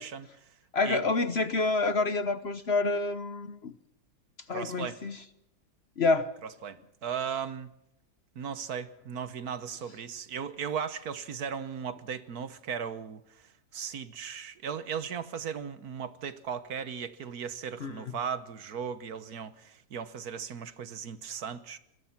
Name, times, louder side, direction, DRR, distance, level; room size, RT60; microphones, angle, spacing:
voice 1, 0.0-0.6 0.8-1.0 4.5-5.0 6.4-7.7 8.4-21.8, right 7 dB, 65° right, 1.6 m, -37 dB
voice 2, 0.7-3.7 4.5-5.2 6.0-6.3 17.8-18.0, left 3 dB, 45° left, 1.0 m, -28 dB
26.0 x 20.5 x 5.9 m
omnidirectional pair, 1.7 m